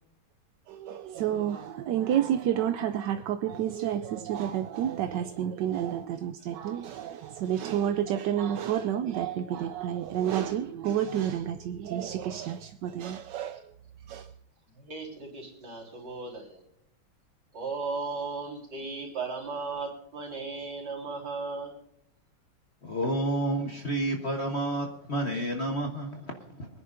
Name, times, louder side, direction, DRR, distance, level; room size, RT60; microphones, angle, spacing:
voice 1, 0.7-13.6 14.1-14.3, right 10 dB, 70° right, 1.1 m, -30 dB
voice 2, 14.7-16.6 17.5-21.7, right 4 dB, 55° right, 4.3 m, -36 dB
voice 3, 22.8-26.7, right 1 dB, 35° left, 1.3 m, -30 dB
24.0 x 10.5 x 2.6 m
omnidirectional pair, 2.3 m